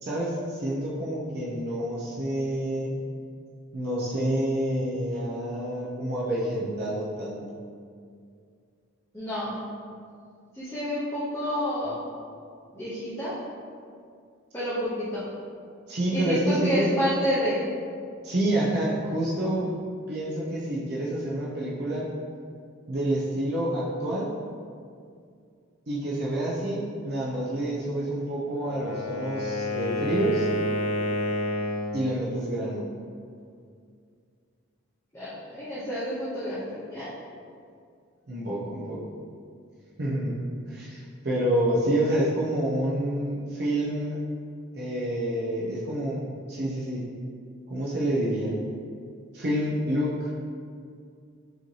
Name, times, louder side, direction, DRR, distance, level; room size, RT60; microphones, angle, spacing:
voice 1, 0.0-3.0 3.7-7.4 15.9-16.9 18.2-19.7 20.1-22.1 22.9-24.3 25.9-30.5 31.9-32.8 38.3-39.0 40.0-40.4 40.6-44.2 44.7-47.1 47.7-48.6 49.3-50.3, right 1 dB, 50° right, -6 dB, 0.5 m, -28 dB
voice 2, 9.1-9.6 10.5-12.0 12.7-13.3 14.5-15.2 16.1-17.6 35.1-37.1, equal, 15° left, -12 dB, 0.7 m, -29 dB
Wind instrument woodwind instrument, 28.5-32.1, left 1 dB, 85° left, 0.5 m, -29 dB
4.8 x 2.8 x 3.1 m, 2.3 s
head